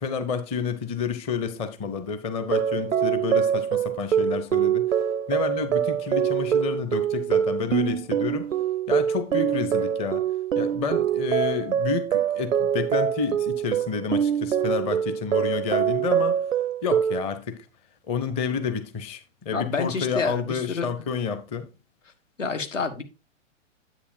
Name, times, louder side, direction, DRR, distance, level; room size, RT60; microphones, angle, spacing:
voice 1, 0.0-5.0 5.3-8.5 8.9-10.3 10.6-16.4 16.8-17.7 18.1-21.7, left 5 dB, 15° left, 0.7 m, -29 dB
sound 1, 2.4-17.2, right 8 dB, 85° right, 0.5 m, -24 dB
voice 2, 19.5-20.9 22.4-23.0, left 4 dB, 70° left, 1.6 m, -28 dB
9.7 x 8.2 x 2.6 m
figure-of-eight pair, 115°, 39 cm